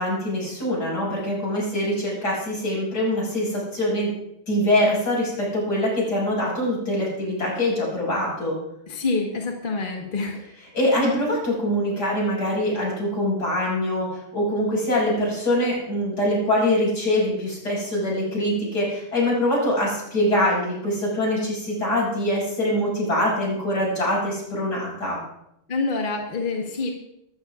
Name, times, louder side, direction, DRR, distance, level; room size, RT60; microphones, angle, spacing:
voice 1, 0.0-4.1 4.5-8.6 10.7-25.2, left 1 dB, 55° left, -4 dB, 6.8 m, -24 dB
voice 2, 8.9-10.4 25.7-26.9, left 3 dB, 30° left, 1 dB, 1.3 m, -26 dB
21.5 x 13.5 x 2.4 m, 0.80 s
omnidirectional pair, 2.2 m